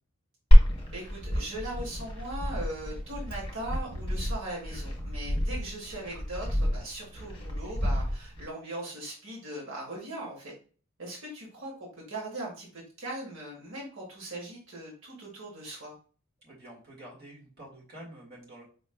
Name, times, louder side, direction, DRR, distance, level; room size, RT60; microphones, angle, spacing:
Glass, 0.5-8.5, equal, 25° left, 1.3 m, -26 dB
voice 1, 0.9-10.5 11.0-15.9, right 1 dB, 60° right, -3 dB, 1.4 m, -39 dB
voice 2, 16.4-18.6, right 1 dB, 45° right, -4 dB, 1.8 m, -48 dB
5.1 x 3.2 x 2.2 m, 0.39 s
head